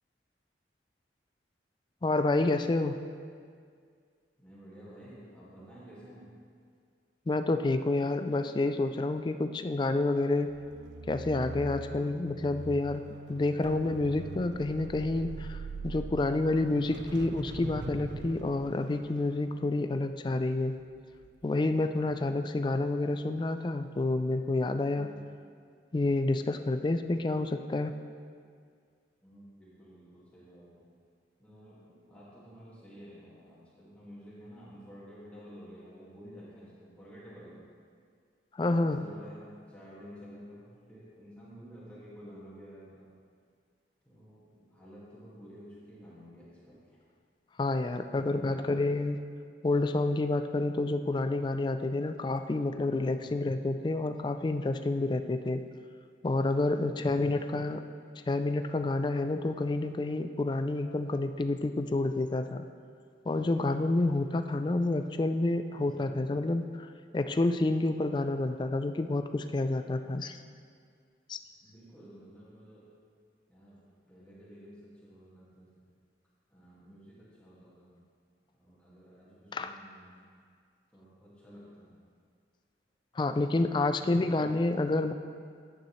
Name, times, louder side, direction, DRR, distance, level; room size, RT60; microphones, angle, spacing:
voice 1, 2.0-3.0 7.3-10.5 11.1-13.0 13.3-20.8 21.4-25.1 25.9-27.9 38.6-39.0 47.6-49.2 49.6-55.6 56.2-57.8 58.3-62.7 63.3-66.9 67.1-70.4 71.3-71.4 79.5-79.8 83.2-85.1, left 2 dB, 25° left, 9 dB, 0.3 m, -29 dB
voice 2, 4.4-6.4 24.9-25.2 29.2-30.8 31.4-37.6 38.6-43.1 44.0-47.0 48.1-48.8 53.2-53.5 65.8-66.2 71.6-72.9 73.5-75.9 76.5-78.0 78.6-80.3 80.9-82.0 83.8-84.4, equal, 5° left, -10 dB, 1.9 m, -51 dB
sound 1, 10.5-20.8 21.2-21.4, right 3 dB, 75° right, 0.4 m, -43 dB
10.0 x 9.1 x 3.1 m, 2.1 s
head